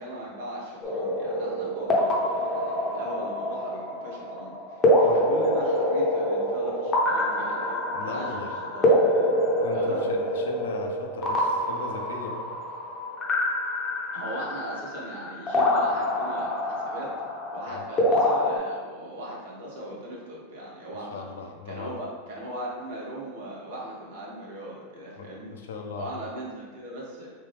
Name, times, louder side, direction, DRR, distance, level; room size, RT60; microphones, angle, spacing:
voice 1, 0.0-9.3 9.7-10.1 14.1-17.1 17.5-21.2 21.7-25.5 26.0-27.3, right 1 dB, 75° right, -4 dB, 1.2 m, -38 dB
sound 1, 0.8-18.6, left 1 dB, 20° left, 0.6 m, -26 dB
voice 2, 7.9-8.5 9.6-12.5 17.7-17.9 21.1-22.0 25.1-26.2, left 4 dB, 90° left, 3 dB, 0.5 m, -38 dB
3.3 x 2.8 x 3.3 m, 1.4 s
supercardioid pair, 130°, 0 cm